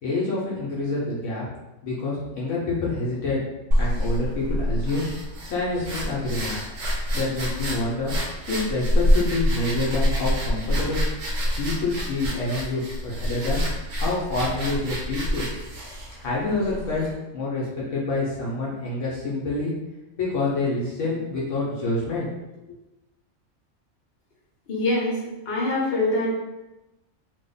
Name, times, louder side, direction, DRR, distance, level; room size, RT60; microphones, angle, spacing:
voice 1, 0.0-1.4 1.8-3.4 3.7-5.0 5.4-6.6 7.1-8.1 8.5-11.0 11.6-13.6 14.0-15.5 16.2-17.1 17.3-19.7 20.2-22.3, left 2 dB, 75° left, -5 dB, 1.0 m, -27 dB
sound 1, 3.7-17.1, equal, 75° right, 1.0 m, -26 dB
voice 2, 24.7-26.3, left 2 dB, 55° left, -4 dB, 1.1 m, -24 dB
2.9 x 2.1 x 3.9 m, 1.0 s
omnidirectional pair, 1.3 m